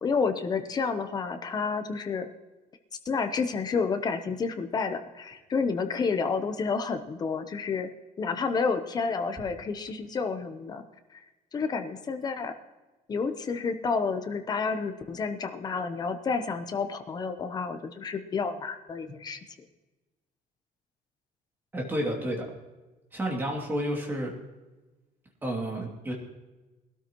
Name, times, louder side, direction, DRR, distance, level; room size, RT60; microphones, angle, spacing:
voice 1, 0.0-2.3 3.0-7.9 8.2-10.8 11.1-11.2 11.5-12.5 13.1-19.4, left 5 dB, 25° left, 7 dB, 0.8 m, -30 dB
voice 2, 21.7-22.5 23.1-24.3 25.4-26.1, equal, 15° right, -1 dB, 2.5 m, -30 dB
21.0 x 12.5 x 3.0 m, 1.2 s
cardioid pair, 180°, 16 cm